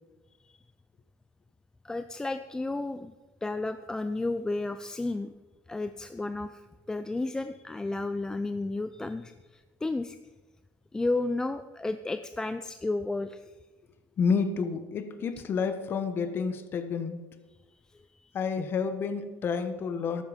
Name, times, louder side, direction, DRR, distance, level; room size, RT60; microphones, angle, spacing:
voice 1, 1.8-3.1 3.4-5.3 5.7-6.6 6.9-10.2 10.9-13.4 17.9-18.3, left 2 dB, 10° left, 10 dB, 0.5 m, -32 dB
voice 2, 14.2-17.2 18.3-20.2, left 5 dB, 35° left, 10 dB, 1.4 m, -29 dB
14.0 x 12.0 x 5.3 m, 1.3 s
cardioid pair, 135°, 6 cm